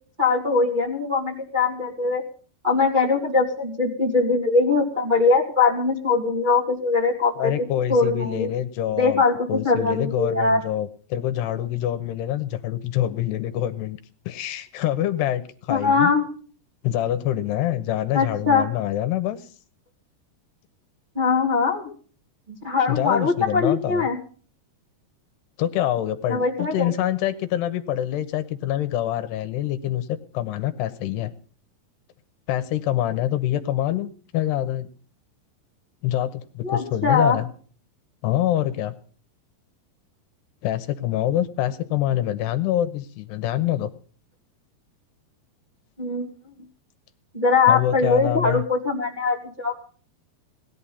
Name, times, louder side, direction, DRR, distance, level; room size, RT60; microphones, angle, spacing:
voice 1, 0.2-2.2 2.6-7.5 7.9-8.5 9.0-10.6 15.7-16.3 18.1-18.7 21.1-21.9 22.6-24.2 26.3-26.9 36.6-37.4 46.0-46.3 47.3-49.7, left 4 dB, 15° right, -1 dB, 2.1 m, -21 dB
voice 2, 7.4-9.2 9.5-14.0 14.3-16.1 16.8-19.5 22.9-24.1 25.6-31.3 32.5-34.9 36.0-37.5 38.2-38.9 40.6-43.9 47.7-48.6, left 12 dB, 80° left, 11 dB, 3.0 m, -25 dB
19.0 x 11.5 x 5.6 m, 0.42 s
omnidirectional pair, 4.9 m